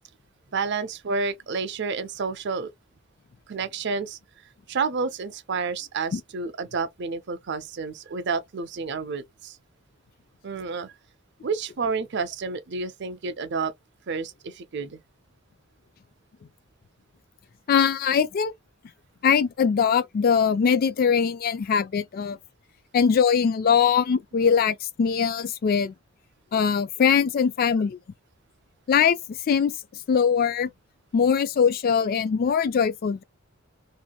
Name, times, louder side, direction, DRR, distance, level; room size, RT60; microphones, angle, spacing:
voice 1, 0.5-2.7 3.5-9.6 10.4-10.9 11.4-13.7 14.1-15.0, right 4 dB, 55° right, 0.5 m, -30 dB
voice 2, 17.7-18.5 19.2-22.4 22.9-25.9 26.5-28.0 28.9-29.7 30.1-30.7 31.1-33.2, left 7 dB, 45° left, 0.3 m, -22 dB
2.9 x 2.6 x 2.3 m
head